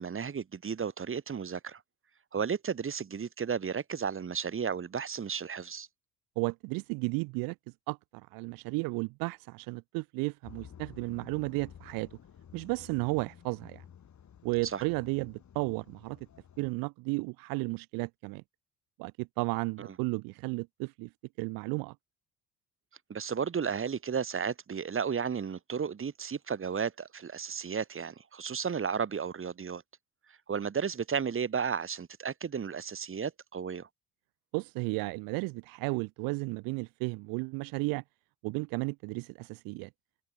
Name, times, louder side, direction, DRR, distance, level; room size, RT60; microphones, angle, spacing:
voice 1, 0.0-1.8 2.3-5.9 14.6-14.8 19.8-19.9 23.1-29.8 30.3-33.9, right 6 dB, 35° right, 2.2 m, -33 dB
voice 2, 6.4-12.2 12.5-13.8 14.4-16.2 16.6-18.4 19.0-21.1 21.4-21.9 34.5-38.0 38.4-39.9, right 27 dB, 70° right, 0.5 m, -34 dB
sound 1, 10.4-16.7, left 9 dB, 50° left, 5.2 m, -53 dB
hypercardioid pair, 60°, 36 cm